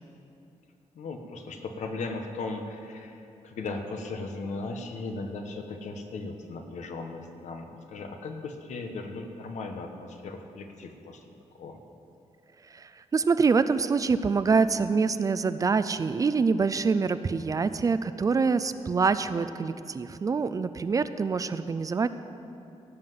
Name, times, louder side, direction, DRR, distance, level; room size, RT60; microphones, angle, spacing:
voice 1, 0.9-11.2 11.5-11.8, left 3 dB, 85° left, 5 dB, 1.2 m, -37 dB
voice 2, 12.7-22.1, right 5 dB, 30° right, 13 dB, 0.4 m, -25 dB
16.5 x 5.8 x 7.7 m, 2.7 s
wide cardioid pair, 165°, 12 cm